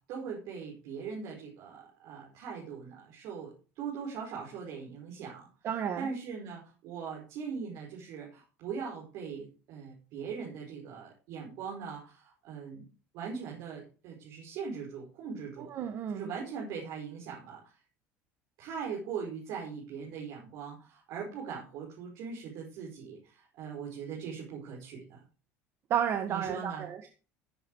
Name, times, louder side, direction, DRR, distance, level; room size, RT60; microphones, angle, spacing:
voice 1, 0.1-5.5 6.0-12.9 13.1-15.7 16.1-17.7 18.6-25.2 26.3-26.9, right 6 dB, 65° right, -3 dB, 5.2 m, -40 dB
voice 2, 5.6-6.1 15.6-16.3 25.9-27.1, right 9 dB, 50° right, 6 dB, 1.7 m, -32 dB
16.0 x 7.3 x 4.9 m, 0.36 s
supercardioid pair, 115°, 6 cm